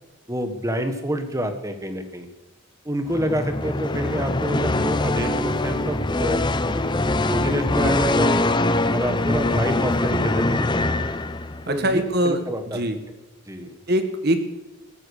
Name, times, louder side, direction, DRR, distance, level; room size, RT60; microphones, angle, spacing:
voice 1, 0.3-2.3 2.8-6.8 7.3-8.4 8.9-11.1 11.7-12.8 13.5-13.7, equal, 15° right, 8 dB, 1.5 m, -28 dB
sound 1, 3.1-11.7, left 2 dB, 20° left, 0.6 m, -23 dB
voice 2, 11.7-13.0 13.9-14.4, right 1 dB, 50° right, 8 dB, 1.8 m, -23 dB
16.0 x 13.0 x 6.7 m, 1.1 s
head